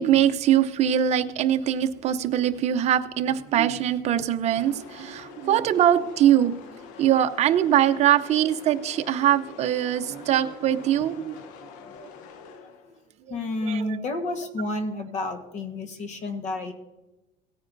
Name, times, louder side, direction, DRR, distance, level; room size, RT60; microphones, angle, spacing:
voice 1, 0.0-6.5 7.0-11.4 12.0-12.1 13.3-13.4 13.6-14.0, right 10 dB, 40° right, 7 dB, 0.7 m, -22 dB
sound 1, 4.4-13.1, left 5 dB, 85° left, 1.0 m, -45 dB
voice 2, 13.3-16.7, left 2 dB, 40° left, 7 dB, 1.4 m, -30 dB
17.5 x 9.6 x 2.6 m, 1.0 s
cardioid pair, 150°, 18 cm